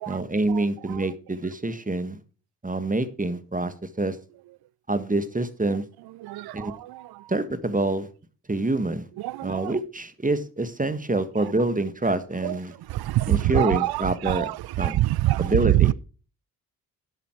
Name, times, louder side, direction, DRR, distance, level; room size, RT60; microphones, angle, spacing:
voice 1, 0.1-2.2 2.6-4.2 4.9-5.8 6.5-6.7 7.3-8.1 8.5-9.1 9.4-12.7 13.3-14.5 14.8-15.0 15.4-15.9, right 2 dB, 20° right, 1.5 m, -26 dB
voice 2, 6.3-6.7 9.2-9.6 12.4-12.5 12.9-13.9 14.3-14.5 14.8-15.4, right 16 dB, 60° right, 0.5 m, -25 dB
10.5 x 7.4 x 4.5 m
hypercardioid pair, 40°, 44 cm